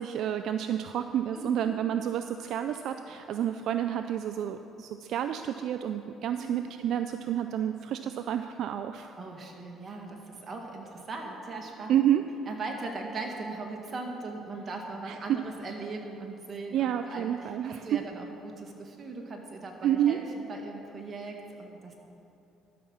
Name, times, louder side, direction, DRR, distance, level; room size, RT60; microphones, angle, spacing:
voice 1, 0.0-9.2 11.9-12.2 15.1-15.2 16.7-18.0 19.8-20.2, right 10 dB, 70° right, 8 dB, 0.4 m, -29 dB
voice 2, 9.2-12.0 12.5-21.9, right 3 dB, 40° right, 1 dB, 1.9 m, -39 dB
12.5 x 6.1 x 7.2 m, 2.8 s
cardioid pair, 85°, 0 cm